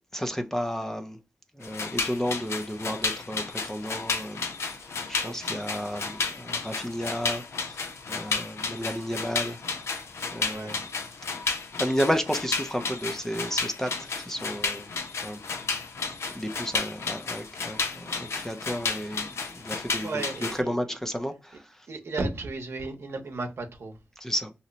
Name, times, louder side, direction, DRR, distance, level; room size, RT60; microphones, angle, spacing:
voice 1, 0.1-1.2 1.5-9.6 10.3-10.8 11.8-14.9 15.2-15.4 16.3-20.1 20.5-21.9 24.2-24.5, equal, 10° left, 0.4 m, -32 dB
sound 1, 1.6-20.6, left 4 dB, 80° left, 0.5 m, -32 dB
voice 2, 5.2-5.6 10.5-10.8 20.0-20.7 21.9-24.0, right 3 dB, 70° right, 0.8 m, -34 dB
2.8 x 2.1 x 3.9 m
wide cardioid pair, 95°, 4 cm